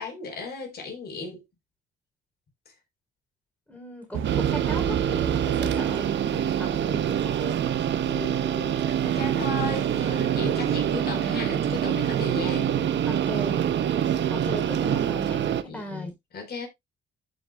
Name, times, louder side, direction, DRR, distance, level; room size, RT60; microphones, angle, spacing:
voice 1, 0.0-1.4 8.1-12.8 15.7-16.7, left 3 dB, 55° left, 4.0 m, -36 dB
voice 2, 3.7-7.6 13.0-13.6 14.3-16.1, left 1 dB, 5° left, 3.4 m, -38 dB
sound 1, 4.1-10.9, right 8 dB, 85° right, 1.2 m, -35 dB
sound 2, 4.2-15.6, right 9 dB, 65° right, 1.0 m, -25 dB
14.0 x 5.6 x 2.3 m
cardioid pair, 90°, 20 cm